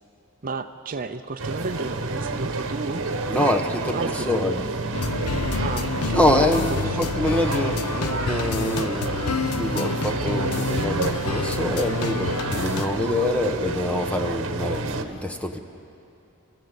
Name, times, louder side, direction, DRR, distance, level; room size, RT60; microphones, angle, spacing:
voice 1, 0.4-3.0 3.4-3.6 3.9-4.5 5.6-6.3 6.7-7.1, right 4 dB, 40° right, 8 dB, 0.6 m, -33 dB
sound 1, 1.4-15.0, right 3 dB, 60° right, 1.4 m, -29 dB
voice 2, 3.3-3.6 3.9-4.0 4.3-4.6 6.1-15.6, left 1 dB, 5° left, 5 dB, 1.1 m, -25 dB
sound 2, 4.9-12.9, left 4 dB, 90° left, 0.7 m, -28 dB
28.0 x 14.5 x 8.2 m, 2.8 s
head